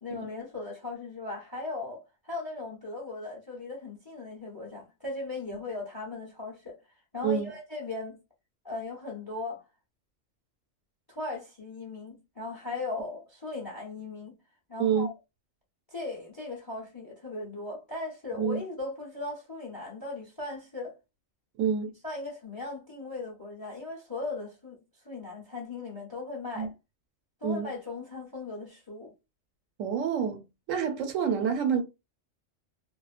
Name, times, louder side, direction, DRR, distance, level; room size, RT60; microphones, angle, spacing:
voice 1, 0.0-6.8 7.1-8.2 8.6-9.6 11.1-14.3 14.7-15.1 15.9-20.9 22.0-24.8 25.0-26.7 27.4-29.1, left 3 dB, 25° left, 0.5 m, -38 dB
voice 2, 21.6-21.9 26.6-26.7 27.4-27.7 29.8-30.4 30.7-31.8, right 7 dB, 80° right, 1.0 m, -27 dB
2.4 x 2.1 x 2.4 m
omnidirectional pair, 1.3 m